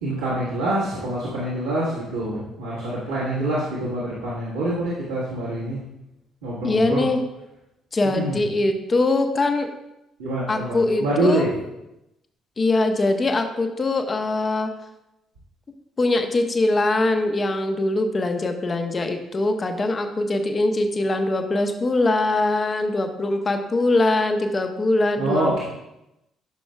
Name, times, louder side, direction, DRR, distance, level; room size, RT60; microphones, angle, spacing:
voice 1, 0.0-5.8 6.4-7.1 8.1-8.4 10.2-11.5 25.2-25.6, right 1 dB, 80° right, -9 dB, 1.8 m, -25 dB
voice 2, 6.6-7.2 7.9-9.7 10.5-11.5 12.6-14.7 16.0-25.5, left 2 dB, 30° left, 6 dB, 0.9 m, -22 dB
12.0 x 6.2 x 2.4 m, 0.91 s
figure-of-eight pair, 45°, 0 cm